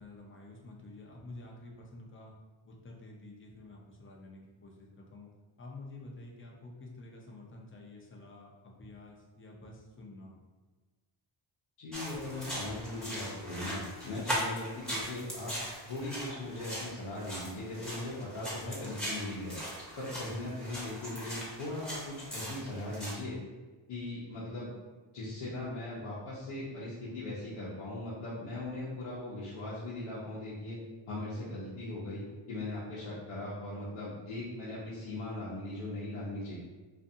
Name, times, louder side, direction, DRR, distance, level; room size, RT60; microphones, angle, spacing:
voice 1, 0.0-2.3 2.6-5.3 5.6-10.3, left 2 dB, 25° left, -1 dB, 0.5 m, -49 dB
voice 2, 11.8-15.5 15.8-19.6 20.0-23.4 23.9-24.7 25.1-30.8 31.1-36.6, left 2 dB, 80° left, -8 dB, 0.8 m, -39 dB
sound 1, 11.9-23.1, equal, ahead, 0.8 m, -40 dB
2.5 x 2.4 x 2.7 m, 1.3 s
cardioid pair, 85°, 49 cm